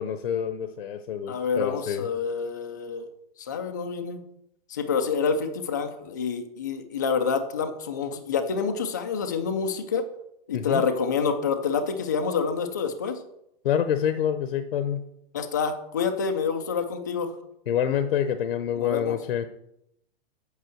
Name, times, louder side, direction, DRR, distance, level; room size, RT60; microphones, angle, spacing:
voice 1, 0.0-2.1 10.5-10.8 13.6-15.0 17.7-19.5, left 9 dB, 65° left, 10 dB, 0.8 m, -27 dB
voice 2, 1.3-3.1 3.4-4.2 4.7-10.0 10.5-13.2 15.3-17.3 18.8-19.2, left 5 dB, 20° left, 6 dB, 0.3 m, -27 dB
8.2 x 5.4 x 7.6 m, 0.79 s
hypercardioid pair, 180°, 31 cm